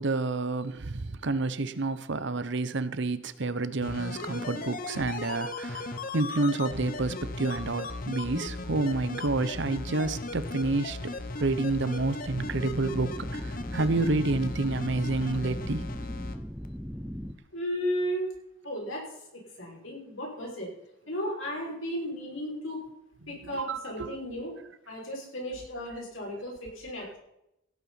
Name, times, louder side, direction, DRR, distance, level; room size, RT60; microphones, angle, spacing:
voice 1, 0.0-5.9 6.1-11.0 11.4-13.4 13.7-15.9 23.3-24.1, right 2 dB, 60° right, 14 dB, 0.9 m, -29 dB
sound 1, 3.8-16.3 16.6-16.7, left 2 dB, 45° left, 1.2 m, -37 dB
sound 2, 12.3-17.3, equal, ahead, 0.7 m, -39 dB
voice 2, 17.5-18.3 18.6-19.0 19.3-20.7 21.1-22.8 23.3-24.5 24.9-27.2, equal, 75° left, -2 dB, 5.9 m, -34 dB
16.5 x 8.7 x 5.8 m, 0.83 s
head